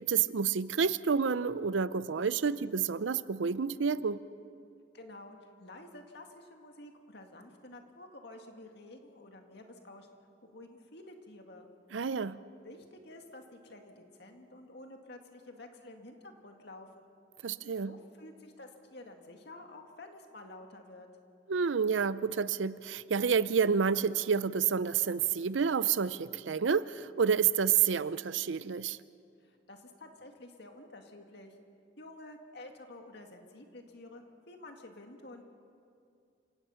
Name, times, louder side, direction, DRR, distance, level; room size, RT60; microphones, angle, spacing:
voice 1, 0.0-4.2 11.9-12.4 17.4-17.9 21.5-29.0, right 6 dB, 85° right, 0.6 m, -29 dB
voice 2, 4.9-10.1 10.5-11.7 12.6-17.1 17.8-21.1 29.4-31.6 32.0-35.4, left 2 dB, 60° left, 2.1 m, -50 dB
28.0 x 17.0 x 5.8 m
head